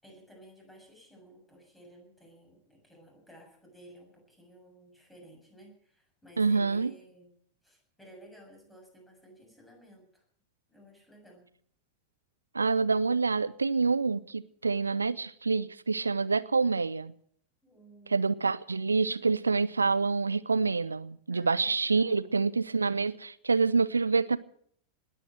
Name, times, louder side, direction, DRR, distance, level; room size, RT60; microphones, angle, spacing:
voice 1, 0.0-7.4 7.6-10.2 10.7-11.5 17.6-18.5 21.3-22.5, right 1 dB, 5° left, 7.2 m, -55 dB
voice 2, 6.4-6.9 12.5-17.1 18.1-24.4, right 4 dB, 75° right, 0.7 m, -27 dB
20.0 x 9.4 x 7.7 m
figure-of-eight pair, 90°, 0 cm